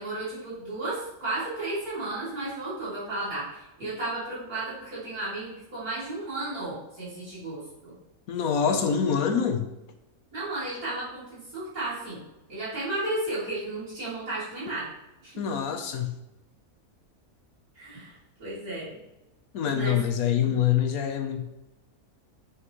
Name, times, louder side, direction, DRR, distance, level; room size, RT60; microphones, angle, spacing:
voice 1, 0.0-7.9 10.3-12.2 12.5-14.9 15.2-15.3 17.8-19.0 19.7-20.0 20.3-20.6, right 2 dB, 85° right, -9 dB, 3.6 m, -33 dB
voice 2, 8.3-9.7 15.4-16.1 19.5-21.4, left 8 dB, 80° left, 6 dB, 1.4 m, -25 dB
8.4 x 7.7 x 3.2 m, 0.95 s
omnidirectional pair, 1.5 m